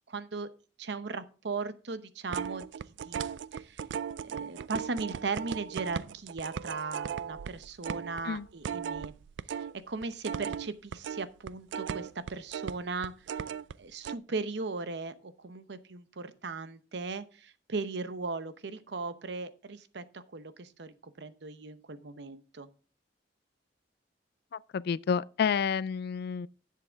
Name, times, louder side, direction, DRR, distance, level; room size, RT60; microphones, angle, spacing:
voice 1, 0.1-0.5 0.8-2.7 3.0-3.2 3.5-3.8 4.2-9.1 9.5-13.4 13.8-22.7, right 4 dB, 70° right, 0.8 m, -38 dB
sound 1, 2.3-9.7 10.0-13.7 14.0-14.2, right 7 dB, 85° right, 0.3 m, -37 dB
voice 2, 24.5-26.5, left 6 dB, 60° left, 0.3 m, -30 dB
11.0 x 7.5 x 3.4 m
head